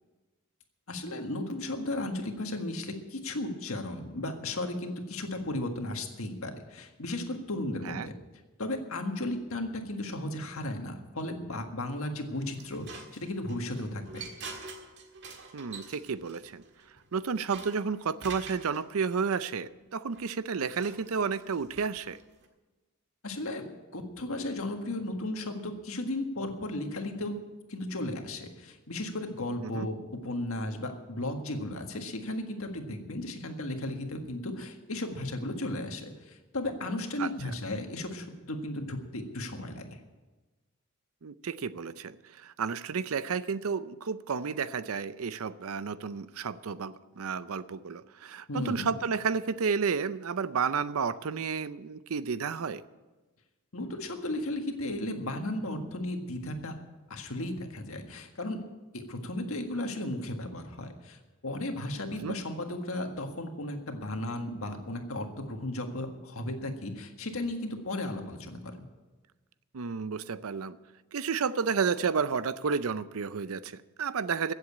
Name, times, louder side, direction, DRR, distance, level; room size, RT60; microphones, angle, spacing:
voice 1, 0.9-8.1 8.6-14.2 23.2-27.4 27.7-30.0 30.2-40.0 48.5-48.9 53.7-56.7 57.1-58.6 58.9-68.6, left 1 dB, 70° left, 4 dB, 1.7 m, -35 dB
sound 1, 12.3-18.8 20.1-22.5, right 4 dB, 50° right, 1.8 m, -47 dB
voice 2, 15.5-16.6 17.1-22.2 29.6-29.9 37.2-37.3 41.2-52.8 62.2-62.4 69.7-70.8 71.1-74.5, right 5 dB, 70° right, 15 dB, 0.5 m, -31 dB
15.5 x 7.8 x 8.5 m, 1.2 s
head